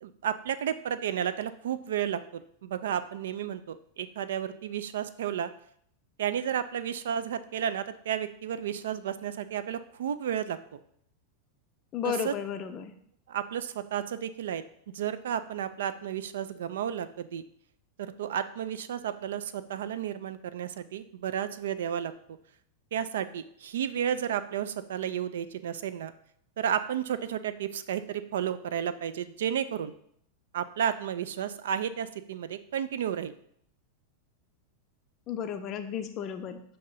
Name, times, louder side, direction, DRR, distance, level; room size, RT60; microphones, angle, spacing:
voice 1, 0.0-5.5 6.2-10.8 12.0-12.3 13.3-14.6 14.9-17.4 18.2-22.4 22.9-26.1 26.6-29.9 30.5-33.3, right 9 dB, 60° right, 13 dB, 0.3 m, -32 dB
voice 2, 11.9-12.9 35.3-36.6, left 8 dB, 35° left, 7 dB, 0.4 m, -33 dB
6.3 x 2.8 x 5.4 m, 0.67 s
figure-of-eight pair, 90°, 0 cm